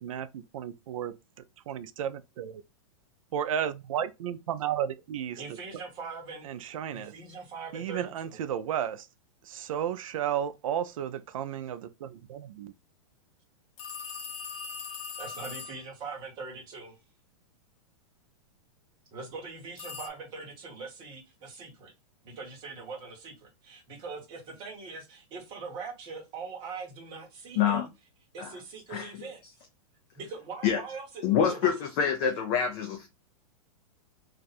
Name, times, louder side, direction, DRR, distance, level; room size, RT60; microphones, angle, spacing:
voice 1, 0.0-1.2 1.7-2.6 3.3-5.4 6.4-7.1 7.7-9.1 9.4-12.7, right 9 dB, 65° right, 0.5 m, -33 dB
voice 2, 5.4-6.4 6.9-8.4 15.2-17.0 19.1-21.9 22.2-27.9 28.3-29.4 30.2-31.2 31.5-31.7, right 4 dB, 25° right, 1.0 m, -42 dB
sound 1, 13.8-15.9 19.8-20.1, left 5 dB, 55° left, 1.0 m, -40 dB
voice 3, 28.9-29.2 30.6-30.8 31.2-33.1, left 8 dB, 25° left, 0.3 m, -26 dB
2.6 x 2.4 x 4.0 m
supercardioid pair, 170°, 19 cm